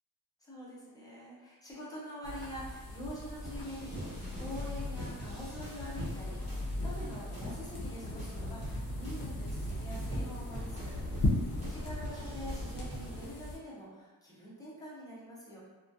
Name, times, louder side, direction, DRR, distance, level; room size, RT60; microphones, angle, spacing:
voice 1, 0.4-11.3 11.6-15.6, equal, 10° left, -7 dB, 0.5 m, -45 dB
sound 1, 2.2-13.6, left 2 dB, 60° left, 0.6 m, -38 dB
sound 2, 3.4-13.3, equal, 50° right, 0.7 m, -45 dB
sound 3, 3.6-7.9 8.2-11.3 11.6-13.3, right 1 dB, 20° right, 0.7 m, -48 dB
2.3 x 2.1 x 2.6 m, 1.2 s
wide cardioid pair, 180°, 38 cm